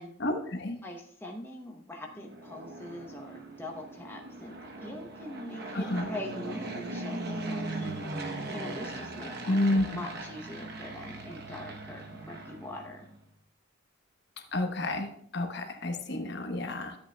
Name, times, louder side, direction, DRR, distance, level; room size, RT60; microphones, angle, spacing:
voice 1, 0.2-0.8 5.7-6.1 9.5-9.8 14.5-17.0, left 1 dB, 55° left, 5 dB, 1.0 m, -30 dB
voice 2, 0.8-8.2 8.5-13.1, left 1 dB, 10° left, 0 dB, 0.8 m, -43 dB
Fixed-wing aircraft airplane, 2.1-13.2, right 2 dB, 50° right, 0.9 m, -39 dB
13.0 x 8.1 x 2.2 m, 0.63 s
head